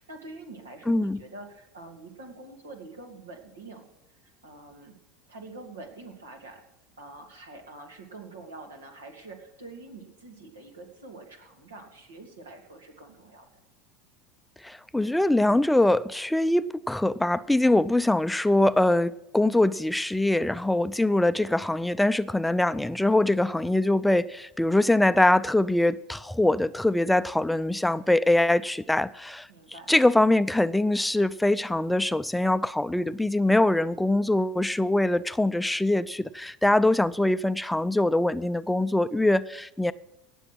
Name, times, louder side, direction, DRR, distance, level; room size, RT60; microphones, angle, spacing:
voice 1, 0.0-5.0 5.3-6.6 7.0-13.5 29.5-29.9, right 3 dB, 90° right, 3 dB, 2.7 m, -45 dB
voice 2, 0.9-1.2 14.6-29.5 29.9-39.9, left 1 dB, 5° left, 14 dB, 0.4 m, -23 dB
18.0 x 7.1 x 6.1 m, 0.92 s
hypercardioid pair, 85°, 0 cm